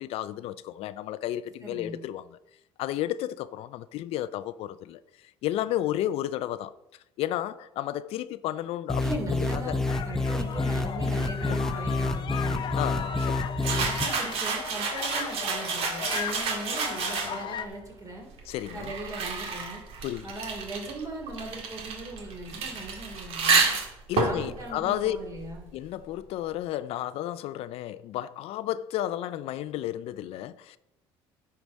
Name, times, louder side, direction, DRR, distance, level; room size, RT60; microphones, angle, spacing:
voice 1, 0.0-2.2 2.8-6.7 7.2-9.2 9.5-9.8 11.5-11.6 12.8-13.5 17.4-17.5 18.5-18.9 20.0-20.3 24.1-25.2 25.7-30.8, left 13 dB, 65° left, 0.4 m, -32 dB
voice 2, 1.6-2.0 9.0-12.7 13.6-18.3 18.7-19.8 20.2-23.8 24.2-25.7, right 2 dB, 30° right, 3.1 m, -39 dB
sound 1, 8.9-14.0, left 2 dB, 5° left, 0.8 m, -28 dB
sound 2, 9.9-17.7, left 8 dB, 45° left, 0.8 m, -37 dB
sound 3, 13.6-17.6 18.4-25.8, right 5 dB, 65° right, 1.9 m, -30 dB
10.0 x 4.7 x 6.2 m
cardioid pair, 100°, 11 cm